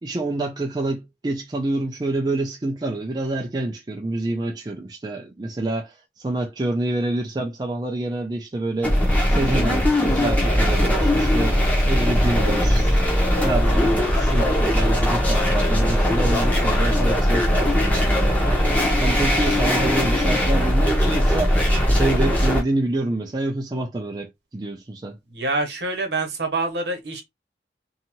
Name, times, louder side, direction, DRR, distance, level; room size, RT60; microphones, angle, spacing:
voice 1, 0.0-9.0 9.3-12.9 13.4-18.6 19.0-21.6 21.9-25.2, right 2 dB, 25° right, 0.4 m, -27 dB
sound 1, 8.8-22.6, equal, 10° left, 0.7 m, -19 dB
voice 2, 25.3-27.2, right 2 dB, 75° right, 0.9 m, -26 dB
2.7 x 2.3 x 2.9 m
head